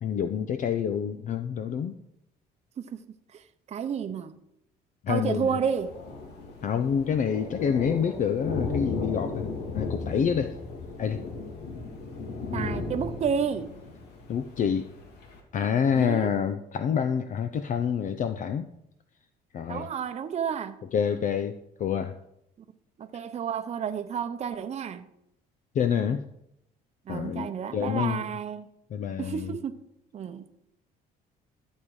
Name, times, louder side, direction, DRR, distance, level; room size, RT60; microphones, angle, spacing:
voice 1, 0.0-2.0 5.0-5.6 6.6-10.5 11.0-11.2 14.3-14.9 15.5-18.7 19.5-19.9 20.9-22.1 25.7-26.2 27.1-28.2 28.9-29.5, left 7 dB, 50° left, 0.6 m, -27 dB
voice 2, 3.7-4.4 5.1-6.0 12.5-13.7 15.9-16.3 19.7-20.9 23.0-25.1 27.1-28.7 29.2-29.8 30.1-30.5, right 7 dB, 40° right, 0.8 m, -31 dB
Thunder, 5.4-15.4, left 3 dB, 75° left, 2.4 m, -36 dB
13.0 x 7.3 x 4.8 m
cardioid pair, 110°, 17 cm